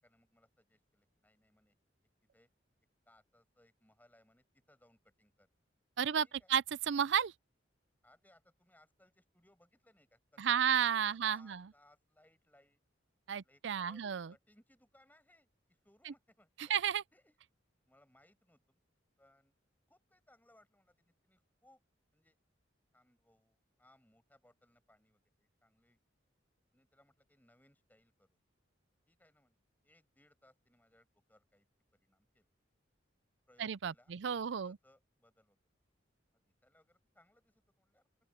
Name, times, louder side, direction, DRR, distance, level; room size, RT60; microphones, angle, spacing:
voice 1, 0.0-1.8 2.3-2.5 3.1-5.5 6.2-6.5 8.0-10.7 11.0-12.8 13.4-14.0 14.3-16.7 17.1-17.4 17.9-18.8 19.2-19.5 19.9-21.8 22.1-22.4 22.9-26.0 26.7-28.4 29.1-29.6 29.8-31.7 31.9-32.5 33.5-35.6 36.3-38.0, left 1 dB, 10° left, 7.2 m, -69 dB
voice 2, 6.0-7.3 10.4-11.7 13.3-14.3 16.1-16.2 16.7-17.0 33.6-34.8, right 8 dB, 65° right, 0.4 m, -32 dB
open air
head